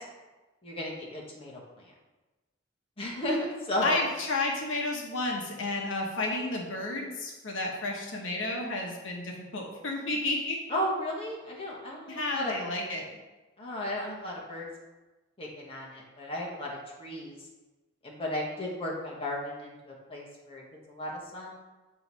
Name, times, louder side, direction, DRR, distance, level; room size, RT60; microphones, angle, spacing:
voice 1, 0.6-1.9 3.0-4.0 10.7-12.6 13.6-14.7 15.4-17.4 18.0-21.5, left 1 dB, 25° left, -3 dB, 1.2 m, -34 dB
voice 2, 3.8-10.6 12.1-13.0, left 2 dB, 70° left, 0 dB, 1.0 m, -31 dB
7.8 x 3.0 x 5.3 m, 1.2 s
head